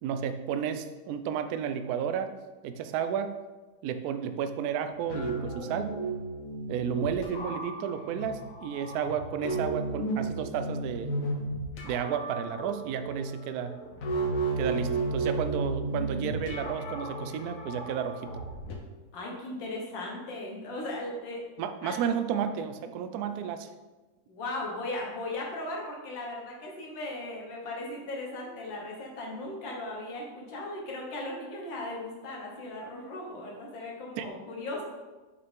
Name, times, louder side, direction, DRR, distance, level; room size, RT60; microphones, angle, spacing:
voice 1, 0.0-2.3 2.6-3.3 3.8-6.0 6.7-11.2 11.8-13.7 14.6-18.3 21.6-23.7 34.2-34.3, right 8 dB, 75° right, 9 dB, 0.9 m, -32 dB
sound 1, 5.1-18.8, right 2 dB, 55° left, 1.2 m, -34 dB
voice 2, 19.1-21.4 21.8-22.2 24.3-34.8, left 2 dB, 80° left, -2 dB, 2.0 m, -37 dB
6.7 x 5.5 x 3.6 m, 1.2 s
omnidirectional pair, 2.0 m